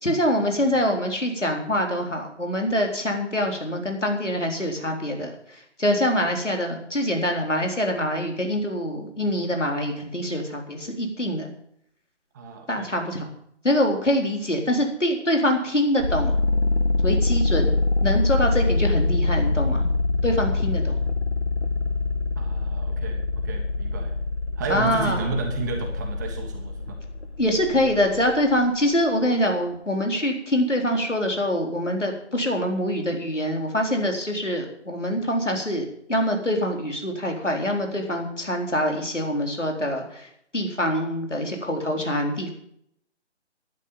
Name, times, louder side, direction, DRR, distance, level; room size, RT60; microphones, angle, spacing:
voice 1, 0.0-11.5 12.7-13.3 13.6-16.4 17.0-17.8 18.0-19.9 20.2-21.0 24.7-25.3 27.4-42.5, equal, 90° left, 2 dB, 4.0 m, -25 dB
voice 2, 12.3-12.9 22.4-23.2 23.4-24.1 24.6-27.0, right 4 dB, 15° right, 2 dB, 1.2 m, -32 dB
sound 1, 16.0-28.7, left 2 dB, 60° left, 1.1 m, -25 dB
11.5 x 9.1 x 7.3 m, 0.69 s
figure-of-eight pair, 150°, 35 cm